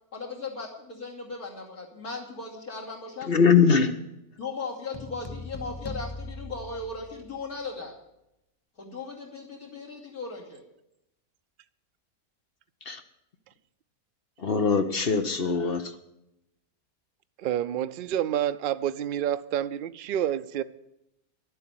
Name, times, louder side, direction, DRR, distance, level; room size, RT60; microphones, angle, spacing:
voice 1, 0.1-3.3 4.4-7.9 8.8-10.6, left 4 dB, 80° left, 3.3 m, -37 dB
voice 2, 3.2-3.9 12.8-13.0 14.4-16.0, left 5 dB, 45° left, 1.1 m, -22 dB
sound 1, 4.9-7.5, left 2 dB, 25° left, 0.5 m, -40 dB
voice 3, 17.4-20.6, right 11 dB, 75° right, 0.4 m, -28 dB
12.0 x 8.0 x 9.0 m
omnidirectional pair, 1.5 m